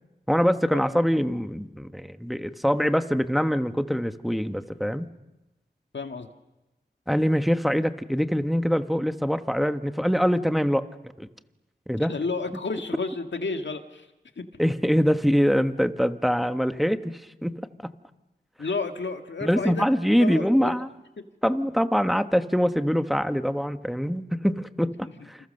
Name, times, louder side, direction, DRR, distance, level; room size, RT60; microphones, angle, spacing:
voice 1, 0.3-5.1 7.1-10.9 11.2-11.3 11.9-12.1 14.6-17.6 19.4-20.9 21.4-25.4, equal, ahead, 9 dB, 1.3 m, -24 dB
voice 2, 5.9-6.3 12.1-14.0 14.4-14.5 18.6-19.9 20.2-20.7 21.2-21.3 25.2-25.3, left 4 dB, 90° left, 6 dB, 1.8 m, -31 dB
28.5 x 28.0 x 6.7 m, 1.0 s
wide cardioid pair, 60°, 18 cm